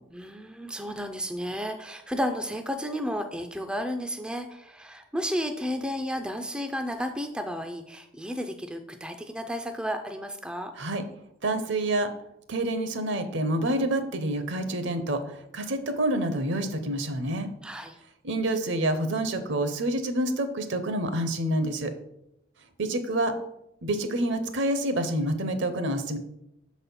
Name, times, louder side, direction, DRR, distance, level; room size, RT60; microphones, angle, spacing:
voice 1, 0.1-10.7 17.6-18.0, equal, 5° right, 6 dB, 0.3 m, -32 dB
voice 2, 11.4-12.1 12.5-17.5 18.2-21.9 22.8-23.3 23.8-26.2, right 1 dB, 60° right, 9 dB, 0.7 m, -27 dB
6.3 x 4.1 x 5.4 m, 0.81 s
head